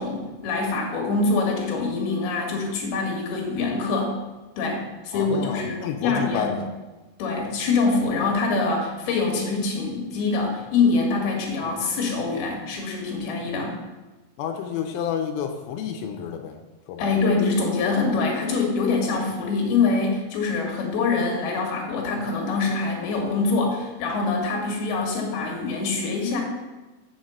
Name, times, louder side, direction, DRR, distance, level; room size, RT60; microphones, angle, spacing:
voice 1, 0.0-4.1 4.6-6.5 7.2-13.8 17.0-26.4, left 4 dB, 60° left, 0 dB, 3.6 m, -24 dB
voice 2, 5.1-6.7 11.6-11.7 14.4-16.6 16.9-17.2, left 7 dB, 90° left, 4 dB, 3.3 m, -30 dB
7.8 x 6.5 x 7.9 m, 1.2 s
omnidirectional pair, 5.7 m